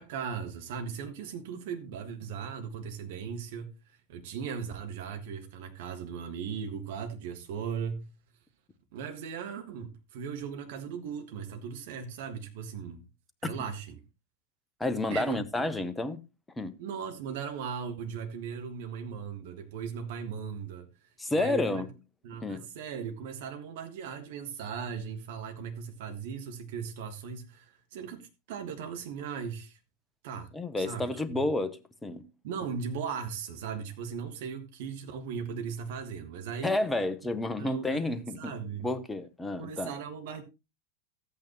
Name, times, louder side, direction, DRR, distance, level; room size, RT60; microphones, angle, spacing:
voice 1, 0.0-3.8 4.1-8.1 8.9-13.0 13.4-14.0 15.1-15.4 16.8-20.9 21.3-21.9 22.2-29.8 30.2-30.5 30.8-31.4 32.4-36.8 37.6-38.9 39.6-40.4, right 6 dB, 50° right, 1.6 m, -38 dB
voice 2, 14.8-16.2 16.6-16.8 21.2-21.9 22.4-22.7 30.5-32.2 36.6-38.5 38.8-39.9, left 2 dB, 10° left, 0.8 m, -30 dB
13.0 x 8.6 x 3.0 m
figure-of-eight pair, 90°, 0 cm